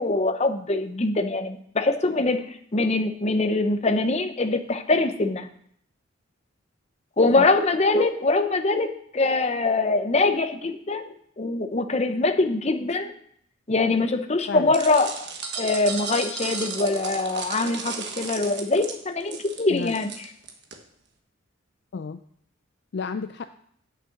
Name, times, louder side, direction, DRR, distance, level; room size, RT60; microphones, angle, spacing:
voice 1, 0.0-2.4 2.7-5.5 7.2-13.1 13.7-15.3 15.6-20.3, left 2 dB, 30° left, 8 dB, 0.7 m, -23 dB
sound 1, 14.7-20.7, right 5 dB, 55° right, 1.3 m, -34 dB
voice 2, 22.9-23.5, left 5 dB, 55° left, 9 dB, 0.4 m, -31 dB
8.9 x 6.7 x 5.9 m, 0.67 s
head